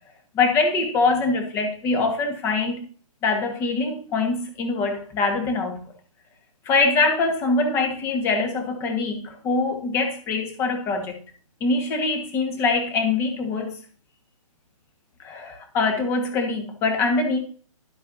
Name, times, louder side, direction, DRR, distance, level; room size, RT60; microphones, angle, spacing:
voice 1, 0.3-2.8 3.2-5.8 6.6-11.2 11.6-13.8 15.2-17.4, left 3 dB, 15° left, 1.4 m, -23 dB
12.0 x 7.7 x 2.6 m
hypercardioid pair, 160°, 18 cm